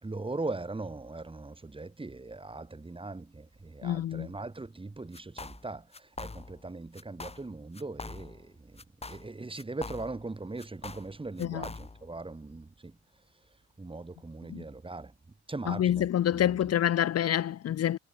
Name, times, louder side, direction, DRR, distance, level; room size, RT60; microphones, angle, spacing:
voice 1, 0.0-13.0 13.8-15.1 15.5-16.6, right 3 dB, 15° right, 2.8 m, -40 dB
voice 2, 3.8-4.3 11.4-11.6 14.5-14.6 15.7-18.0, left 11 dB, 55° left, 0.8 m, -27 dB
sound 1, 5.1-5.7 5.9-6.7 6.9-7.5 7.7-8.5 8.8-10.3 10.6-12.1, left 3 dB, 20° left, 2.1 m, -43 dB
cardioid pair, 90°, 30 cm